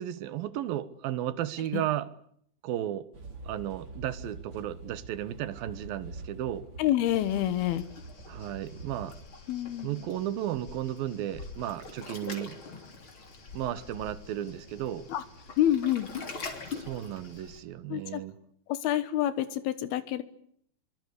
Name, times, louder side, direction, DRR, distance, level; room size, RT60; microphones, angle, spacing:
voice 1, 0.0-2.1 2.6-3.1 3.5-6.7 8.3-9.2 9.8-12.6 13.5-15.1 16.7-18.4, right 12 dB, 75° right, 15 dB, 3.0 m, -34 dB
sound 1, 3.1-9.1, right 3 dB, 30° right, 3.5 m, -45 dB
voice 2, 6.8-7.8 9.5-10.0 15.1-15.2 15.6-16.1 17.9-18.2 18.7-20.2, left 12 dB, 85° left, 13 dB, 3.2 m, -27 dB
Waves surf, 7.0-17.6, left 4 dB, 35° left, 3.7 m, -44 dB
24.0 x 23.5 x 8.4 m, 0.67 s
omnidirectional pair, 4.3 m